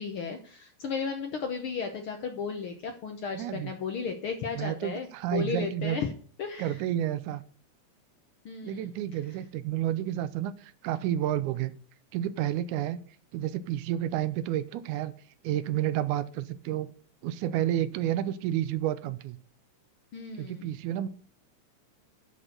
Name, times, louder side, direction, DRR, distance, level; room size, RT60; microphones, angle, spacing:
voice 1, 0.0-6.1 6.4-6.8 8.4-8.9 20.1-20.8, left 5 dB, 65° left, 5 dB, 1.4 m, -34 dB
voice 2, 3.3-3.7 4.6-6.0 6.6-7.4 8.6-11.7 12.1-13.0 13.3-15.1 15.4-16.9 17.2-19.4 20.4-21.1, right 12 dB, 85° right, 15 dB, 2.0 m, -30 dB
10.5 x 4.3 x 6.5 m, 0.43 s
omnidirectional pair, 3.5 m